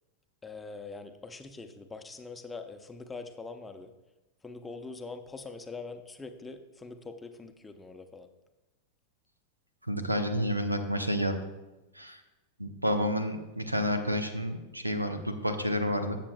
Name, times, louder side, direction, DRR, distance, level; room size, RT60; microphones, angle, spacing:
voice 1, 0.4-3.9 4.4-8.3, left 3 dB, 10° left, 7 dB, 0.7 m, -43 dB
voice 2, 9.9-11.4 11.9-12.2 12.6-16.2, equal, 85° right, 9 dB, 0.7 m, -30 dB
17.0 x 7.5 x 2.2 m, 1.1 s
figure-of-eight pair, 90°, 0 cm